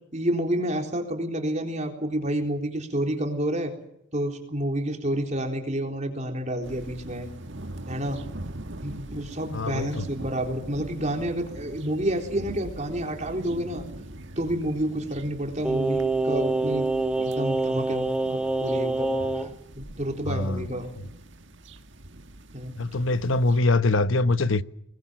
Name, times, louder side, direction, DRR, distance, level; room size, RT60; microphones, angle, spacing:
voice 1, 0.1-3.7 4.1-7.3 7.9-8.2 8.8-13.8 14.4-16.9 17.2-19.5 19.8-20.9 22.5-22.8, right 1 dB, 35° right, 3.9 m, -29 dB
sound 1, 6.6-23.6, right 1 dB, 65° right, 1.7 m, -42 dB
voice 2, 9.5-10.1 20.3-20.6 22.8-24.6, left 2 dB, 80° left, 1.0 m, -23 dB
Singing, 15.6-19.5 19.8-19.9, right 2 dB, 5° right, 1.5 m, -26 dB
26.0 x 21.0 x 7.5 m
head